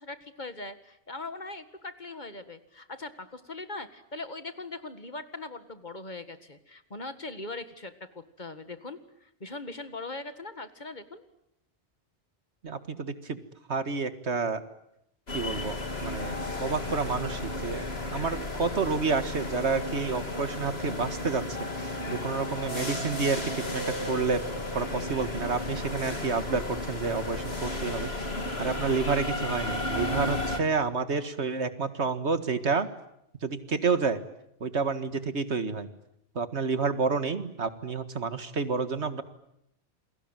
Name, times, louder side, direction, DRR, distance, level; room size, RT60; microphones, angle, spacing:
voice 1, 0.0-11.2, left 2 dB, 40° left, 11 dB, 2.0 m, -40 dB
voice 2, 12.6-13.4 13.7-14.6 15.3-17.8 18.1-24.4 24.7-28.3 28.6-32.9 33.4-34.2 34.6-35.9 36.4-39.2, right 4 dB, 75° right, 12 dB, 2.0 m, -29 dB
sound 1, 15.3-30.6, left 2 dB, 65° left, 3.4 m, -33 dB
28.5 x 22.0 x 9.1 m, 0.81 s
omnidirectional pair, 1.2 m